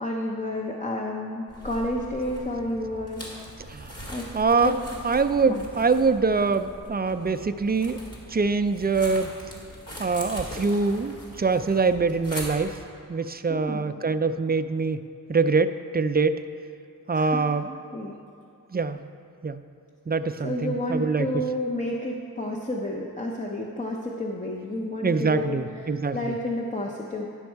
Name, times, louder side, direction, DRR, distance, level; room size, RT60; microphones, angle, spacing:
voice 1, 0.0-3.2 4.1-4.3 4.6-4.8 5.5-5.7 13.5-13.8 17.1-17.4 17.9-18.1 20.4-27.3, left 1 dB, 20° left, -1 dB, 0.7 m, -30 dB
sound 1, 1.5-12.9, equal, 45° left, 2.2 m, -41 dB
voice 2, 4.3-4.7 5.0-8.0 8.3-9.3 10.0-12.8 13.1-15.0 15.3-16.4 17.1-17.7 18.7-19.0 19.4-19.6 20.1-21.3 25.0-26.4, right 4 dB, 30° right, 10 dB, 0.4 m, -24 dB
10.5 x 6.3 x 4.5 m, 2.6 s
wide cardioid pair, 65°, 35 cm